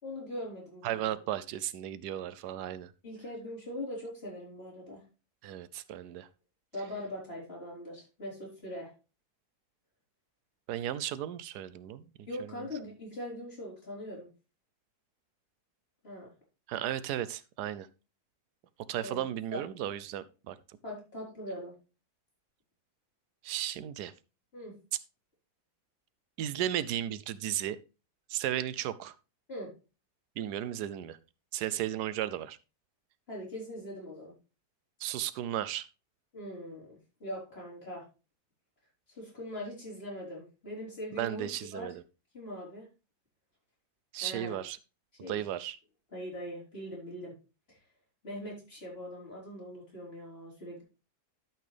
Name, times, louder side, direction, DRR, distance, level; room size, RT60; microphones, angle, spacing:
voice 1, 0.0-1.1 3.0-5.0 6.7-8.9 12.3-14.3 16.0-16.3 19.0-19.3 19.5-19.6 20.8-21.7 24.5-24.7 29.5-29.7 33.3-34.3 36.3-38.0 39.1-41.9 42.3-42.9 44.2-44.6 45.2-45.4 46.1-47.4 47.7-47.8 48.2-50.8, left 1 dB, 40° left, 4.8 m, -41 dB
voice 2, 0.8-2.9 5.4-6.3 10.7-12.0 16.7-17.9 18.9-20.6 23.4-24.1 26.4-27.8 28.3-29.1 30.4-31.2 31.5-32.6 35.0-35.9 41.2-42.0 44.1-44.8 45.3-45.8, right 11 dB, 85° right, 1.2 m, -34 dB
12.0 x 6.0 x 3.3 m
omnidirectional pair, 1.7 m